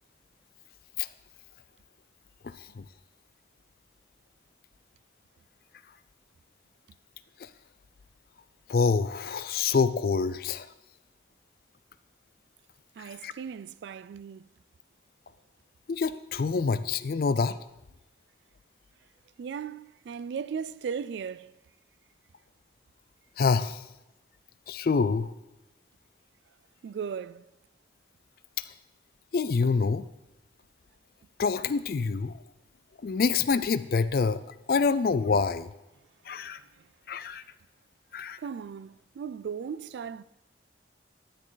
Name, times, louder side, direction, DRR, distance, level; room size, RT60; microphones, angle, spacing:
voice 1, 2.4-2.8 8.7-10.7 13.2-13.3 15.9-17.6 23.4-23.8 24.7-25.3 29.3-30.0 31.4-32.4 33.0-34.4 34.7-35.7 36.3-36.6 37.1-37.4 38.1-38.4, left 5 dB, 55° left, 0.4 m, -26 dB
voice 2, 13.0-14.5 19.4-21.5 26.8-27.5 36.7-36.9 38.4-40.2, right 6 dB, 75° right, 0.3 m, -37 dB
10.0 x 9.3 x 3.9 m
head